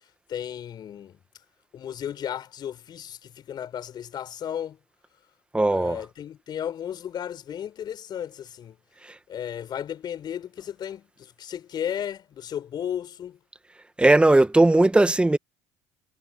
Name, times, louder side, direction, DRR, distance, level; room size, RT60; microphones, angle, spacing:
voice 1, 0.3-1.2 1.7-4.8 5.7-8.8 9.3-13.4, left 9 dB, 45° left, 4.7 m, -34 dB
voice 2, 5.5-6.0 9.0-9.2 14.0-15.4, right 2 dB, 10° right, 1.9 m, -18 dB
hypercardioid pair, 65°, 10 cm